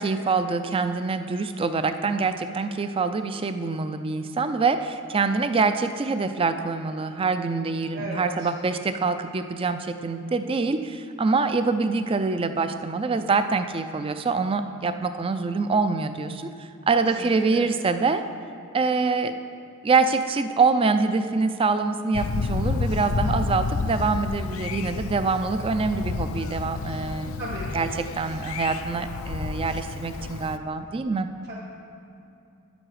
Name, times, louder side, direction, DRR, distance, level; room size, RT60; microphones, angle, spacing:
voice 1, 0.0-16.5 16.9-18.2 18.7-19.4 19.8-27.3 27.7-31.3, right 4 dB, 25° right, 9 dB, 0.4 m, -25 dB
voice 2, 7.9-8.5 17.0-17.7 27.3-27.9 31.5-31.6, right 1 dB, 50° right, -5 dB, 1.4 m, -36 dB
Thunder, 22.1-30.6, left 4 dB, 65° left, 0.4 m, -30 dB
9.8 x 7.8 x 4.8 m, 2.7 s
head